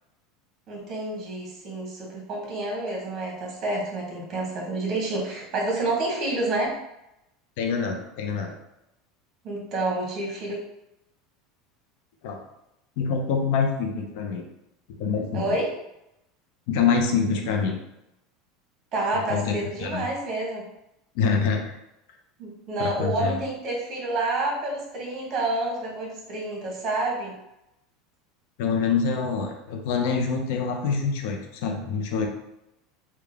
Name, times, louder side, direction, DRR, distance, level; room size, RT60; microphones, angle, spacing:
voice 1, 0.7-6.8 9.4-10.6 15.3-15.7 18.9-20.7 22.4-27.3, right 2 dB, 40° right, -2 dB, 1.4 m, -28 dB
voice 2, 7.6-8.5 12.2-12.4 13.0-14.4 15.0-15.5 16.7-17.8 19.1-20.1 21.1-21.7 22.8-23.4 28.6-32.3, left 5 dB, 70° left, 3 dB, 0.6 m, -25 dB
3.4 x 2.3 x 3.4 m, 0.87 s
supercardioid pair, 120°, 0 cm